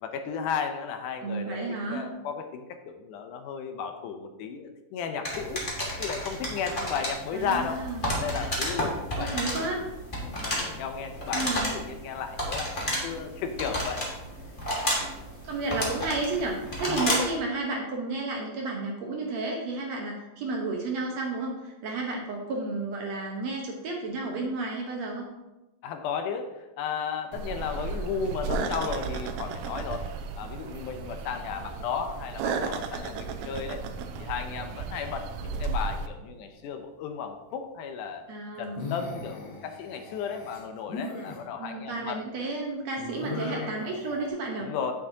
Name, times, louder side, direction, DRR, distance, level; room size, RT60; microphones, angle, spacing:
voice 1, 0.0-1.6 1.9-5.7 6.0-7.9 8.1-9.7 10.2-14.1 16.9-17.2 25.8-30.1 30.4-33.8 34.2-38.2 38.6-42.2 44.6-44.9, left 6 dB, 80° left, 7 dB, 2.1 m, -34 dB
voice 2, 1.2-2.0 7.3-8.2 9.1-9.8 11.3-11.8 15.4-25.3 38.3-38.9 41.6-44.7, right 3 dB, 70° right, 0 dB, 1.8 m, -32 dB
sound 1, 5.2-17.4, equal, 35° left, 0.8 m, -32 dB
sound 2, 27.3-36.1, right 4 dB, 90° right, 1.6 m, -34 dB
sound 3, 36.1-36.5 38.6-41.4 43.0-44.3, left 4 dB, 60° left, 1.1 m, -38 dB
9.1 x 7.4 x 2.7 m, 1.0 s
omnidirectional pair, 3.8 m